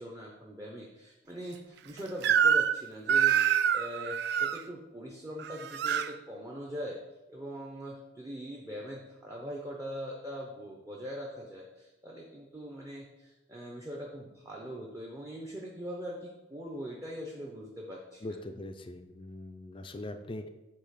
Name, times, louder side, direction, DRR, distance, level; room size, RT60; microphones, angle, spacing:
voice 1, 0.0-7.0 7.3-18.4, equal, 15° right, -2 dB, 0.8 m, -42 dB
Crying sobbing / Screech, 2.2-2.8 3.1-4.6 5.4-6.1, right 8 dB, 60° right, 0.3 m, -26 dB
voice 2, 18.2-20.5, left 1 dB, 30° left, 7 dB, 0.5 m, -41 dB
8.5 x 2.9 x 5.7 m, 1.1 s
head